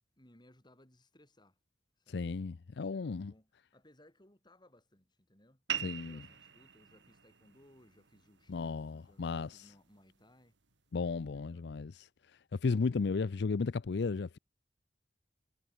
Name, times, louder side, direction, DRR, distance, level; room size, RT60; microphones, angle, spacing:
voice 1, 0.2-1.6 2.0-2.4 2.7-5.6 6.0-10.6 11.2-11.8, left 1 dB, 25° left, 7.4 m, -64 dB
voice 2, 2.1-3.3 5.8-6.2 8.5-9.6 10.9-12.1 12.6-14.4, left 4 dB, 65° left, 0.5 m, -34 dB
sound 1, 5.7-10.7, right 9 dB, 85° right, 3.4 m, -45 dB
head